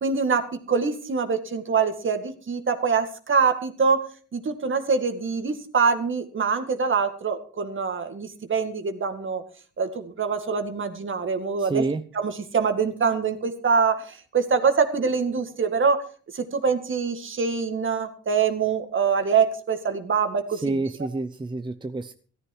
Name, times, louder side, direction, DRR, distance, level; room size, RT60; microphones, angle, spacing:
voice 1, 0.0-4.0 4.3-9.4 9.8-11.8 12.2-16.0 16.3-20.6, right 5 dB, 40° right, 8 dB, 2.2 m, -24 dB
voice 2, 11.6-12.1 20.5-22.1, right 3 dB, 15° right, 11 dB, 0.7 m, -28 dB
14.0 x 13.5 x 4.6 m, 0.42 s
cardioid pair, 90°, 30 cm